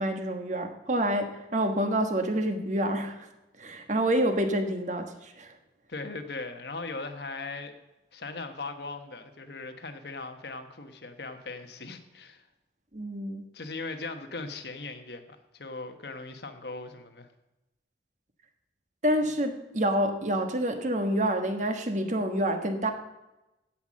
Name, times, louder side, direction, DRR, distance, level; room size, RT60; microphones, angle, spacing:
voice 1, 0.0-3.3 3.6-5.6 12.9-13.5 19.0-22.9, right 1 dB, 40° right, 6 dB, 1.3 m, -28 dB
voice 2, 5.9-7.8 8.1-12.5 13.5-15.2 15.5-17.3, left 3 dB, 65° left, 7 dB, 1.2 m, -39 dB
16.0 x 5.9 x 7.4 m, 0.98 s
head